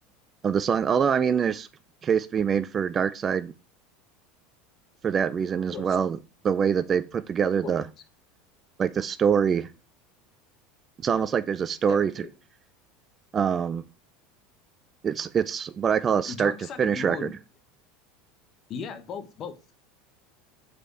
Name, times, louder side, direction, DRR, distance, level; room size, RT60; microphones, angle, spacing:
voice 1, 0.4-1.7 2.0-3.5 5.0-6.2 6.4-7.8 8.8-9.7 11.0-12.3 13.3-13.8 15.0-16.5 16.8-17.3, right 7 dB, 30° right, 0.4 m, -24 dB
voice 2, 7.4-7.8 11.9-12.3 16.2-17.4 18.7-19.7, left 6 dB, 40° left, 0.9 m, -38 dB
5.1 x 4.4 x 4.6 m
supercardioid pair, 110°, 0 cm